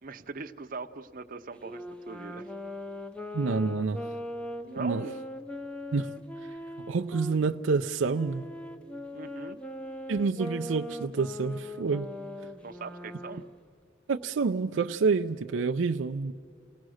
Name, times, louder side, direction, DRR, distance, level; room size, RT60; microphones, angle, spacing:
voice 1, 0.0-2.5 4.6-5.2 9.1-9.6 12.6-13.5, right 3 dB, 45° right, 7 dB, 0.7 m, -40 dB
Wind instrument woodwind instrument, 1.6-7.4 8.1-13.5, left 1 dB, 5° left, 0.6 m, -40 dB
voice 2, 3.3-4.1 4.8-5.0 5.9-6.2 6.5-6.6 6.9-8.5 10.1-12.1 14.1-16.3, right 4 dB, 75° right, 5 dB, 0.5 m, -28 dB
28.5 x 18.0 x 6.4 m, 2.2 s
head